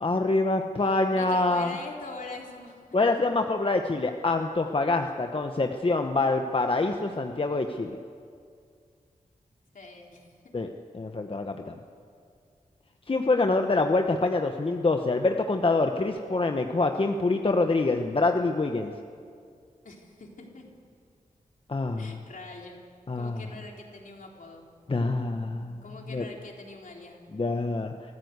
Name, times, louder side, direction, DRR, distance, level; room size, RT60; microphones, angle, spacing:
voice 1, 0.0-1.7 2.9-8.0 10.5-10.7 10.9-11.7 13.1-18.9 21.7-22.2 23.1-23.4 24.9-25.8 26.1-26.2 27.3-27.9, left 3 dB, 40° left, 5 dB, 1.0 m, -25 dB
voice 2, 0.8-2.9 9.7-10.5 19.8-20.7 22.0-22.8 23.1-24.6 25.8-27.2, left 2 dB, 70° left, 0 dB, 3.6 m, -43 dB
24.5 x 14.5 x 8.1 m, 2.2 s
wide cardioid pair, 80°, 14 cm